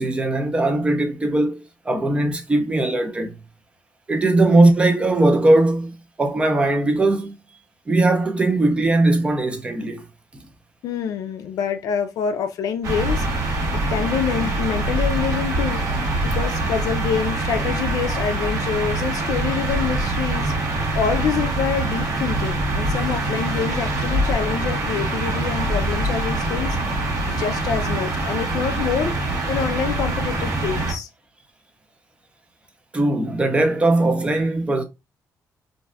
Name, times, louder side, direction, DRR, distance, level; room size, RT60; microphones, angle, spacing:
voice 1, 0.0-3.3 4.1-7.3 7.9-10.0 32.9-34.8, right 2 dB, 20° right, 0.6 m, -19 dB
voice 2, 10.8-13.2 13.7-15.8 16.2-20.5 20.9-26.8 27.3-29.1 29.5-31.1, left 7 dB, 70° left, 0.4 m, -26 dB
sound 1, 12.8-30.9, right 2 dB, 60° right, 1.1 m, -24 dB
2.6 x 2.3 x 3.2 m
cardioid pair, 150°, 6 cm